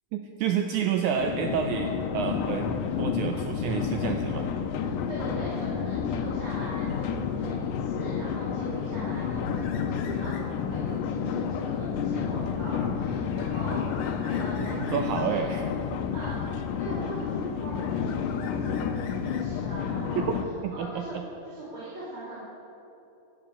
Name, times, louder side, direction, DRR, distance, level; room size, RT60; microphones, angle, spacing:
voice 1, 0.1-4.5 13.7-13.8 14.6-15.6 15.9-16.0 20.2-20.3 20.6-21.3, right 7 dB, 75° right, 5 dB, 2.0 m, -29 dB
sound 1, 1.2-20.5, left 7 dB, 80° left, 2.4 m, -30 dB
voice 2, 4.7-15.5 16.1-16.4 16.8-20.3 20.7-21.2 21.4-22.4, right 1 dB, 40° right, -9 dB, 4.0 m, -40 dB
sound 2, 9.4-10.7 11.1-15.4 16.4-17.2 17.5-19.9, left 6 dB, 60° left, 1.8 m, -47 dB
12.5 x 12.0 x 8.8 m, 2.9 s
omnidirectional pair, 3.8 m